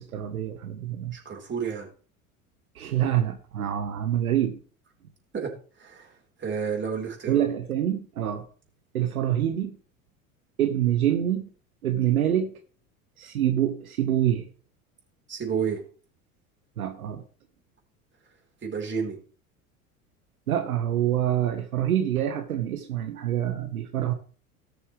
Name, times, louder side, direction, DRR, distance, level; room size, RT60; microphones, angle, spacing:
voice 1, 0.0-1.1 2.7-4.6 7.3-8.4 8.9-9.8 10.6-11.5 11.8-12.6 13.2-14.5 16.8-17.2 20.5-24.1, right 11 dB, 75° right, 8 dB, 1.2 m, -26 dB
voice 2, 1.1-1.9 5.3-5.5 5.8-6.1 6.4-7.5 15.3-15.8 18.6-19.2, right 6 dB, 25° right, 1 dB, 4.2 m, -30 dB
18.5 x 6.8 x 3.3 m, 0.39 s
figure-of-eight pair, 75°, 43 cm